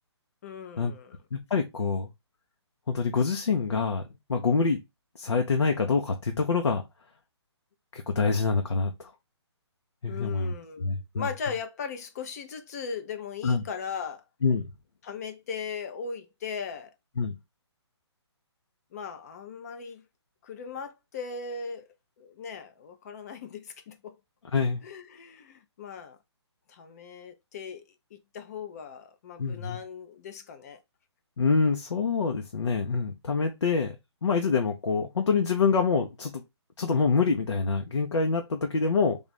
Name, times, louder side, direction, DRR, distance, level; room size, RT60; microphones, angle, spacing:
voice 1, 0.4-1.2 10.1-14.2 15.0-16.9 18.9-20.0 20.4-24.1 24.8-26.2 26.7-27.8 28.1-30.8, left 6 dB, 35° left, 0.6 m, -38 dB
voice 2, 1.3-2.1 2.9-4.0 4.3-4.8 5.2-6.8 7.9-9.1 10.0-11.3 13.4-13.6 14.4-14.7 17.2-17.3 24.5-24.8 29.4-29.8 31.4-34.0 34.2-36.4 36.8-39.2, left 4 dB, 85° left, 0.8 m, -26 dB
3.5 x 2.4 x 4.1 m
hypercardioid pair, 155°, 15 cm